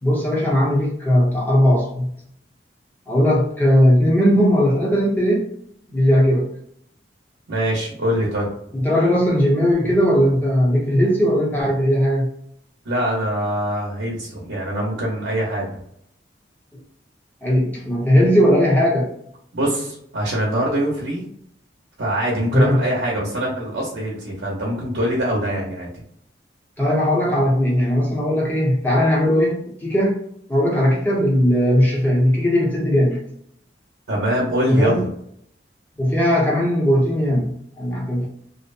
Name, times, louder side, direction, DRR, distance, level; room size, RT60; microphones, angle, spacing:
voice 1, 0.0-2.1 3.1-5.5 5.9-6.5 8.7-12.3 17.4-19.1 22.5-22.8 26.8-30.2 30.5-33.2 34.7-35.0 36.0-38.3, equal, 10° left, -4 dB, 0.7 m, -18 dB
voice 2, 7.5-8.5 12.8-15.8 19.5-21.2 22.0-26.0 34.1-35.1, equal, 85° right, -3 dB, 0.8 m, -23 dB
2.6 x 2.1 x 2.4 m, 0.70 s
head